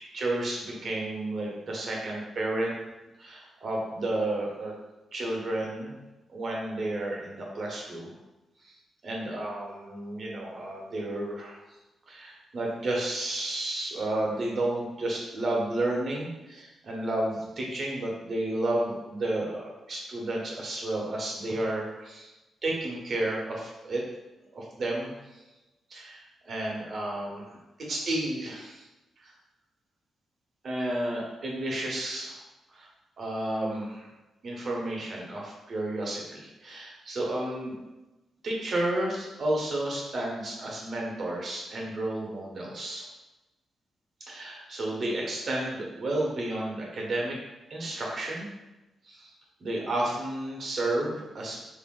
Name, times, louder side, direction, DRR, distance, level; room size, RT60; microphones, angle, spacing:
voice 1, 0.1-2.7 3.2-4.7 5.1-5.9 6.3-8.1 9.0-11.6 12.1-22.3 22.6-24.0 24.5-25.4 25.9-26.1 26.5-28.9 29.2-29.3 30.6-32.3 32.7-32.9 33.2-34.1 34.4-37.7 38.4-43.0 44.2-47.3 47.7-48.5 49.1-49.3 49.6-51.6, right 1 dB, 55° right, -2 dB, 1.1 m, -31 dB
3.3 x 2.7 x 3.7 m, 1.0 s
supercardioid pair, 50°, 0 cm